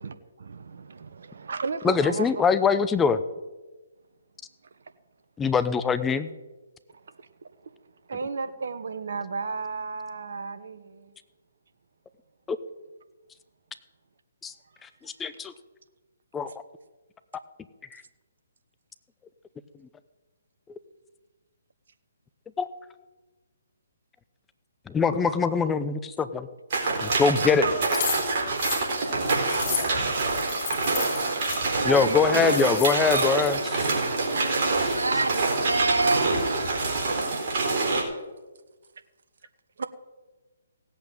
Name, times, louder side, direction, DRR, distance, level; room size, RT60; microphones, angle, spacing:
voice 1, 0.0-2.5 8.1-11.1 31.7-32.6 39.8-39.9, right 4 dB, 65° right, 1.2 m, -33 dB
voice 2, 1.8-3.2 5.4-6.3 12.5-12.6 14.4-14.5 14.8-15.5 16.3-16.5 17.9-18.0 22.6-22.7 24.9-26.5 27.0-27.7 29.7-29.8 31.8-33.9 34.8-34.9, left 5 dB, 10° left, 0.7 m, -23 dB
sound 1, 26.7-38.0, right 3 dB, 45° right, 4.2 m, -26 dB
sound 2, 27.9-31.6 32.1-32.2 32.4-33.5, left 8 dB, 35° left, 5.8 m, -33 dB
voice 3, 33.9-36.4, right 3 dB, 85° right, 0.7 m, -28 dB
17.0 x 8.2 x 8.9 m
figure-of-eight pair, 140°, 0 cm